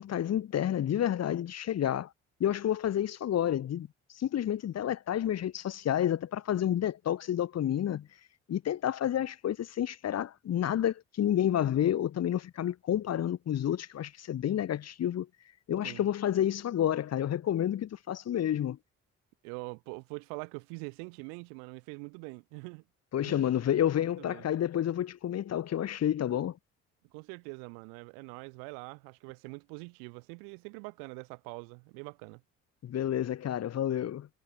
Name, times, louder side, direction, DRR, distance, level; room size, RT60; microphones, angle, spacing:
voice 1, 0.0-2.1 2.4-3.9 4.1-8.1 8.5-15.3 15.7-18.8 23.1-26.6 32.8-34.3, left 10 dB, 50° left, 1.4 m, -30 dB
voice 2, 19.4-22.8 23.2-23.6 24.0-24.4 27.1-32.4, right 40 dB or more, 90° right, 2.5 m, -44 dB
supercardioid pair, 65°, 32 cm